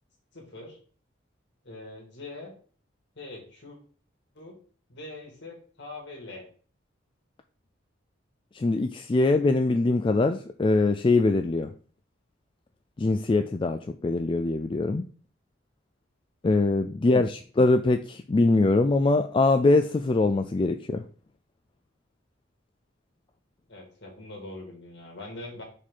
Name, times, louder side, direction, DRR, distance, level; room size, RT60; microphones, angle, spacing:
voice 1, 0.3-0.8 1.6-2.5 3.2-3.8 4.3-4.6 4.9-6.5 23.7-25.6, left 2 dB, 60° left, 0 dB, 2.4 m, -43 dB
voice 2, 8.5-11.7 13.0-15.0 16.4-21.0, left 2 dB, 25° left, 8 dB, 0.3 m, -23 dB
5.1 x 4.2 x 5.5 m, 0.42 s
head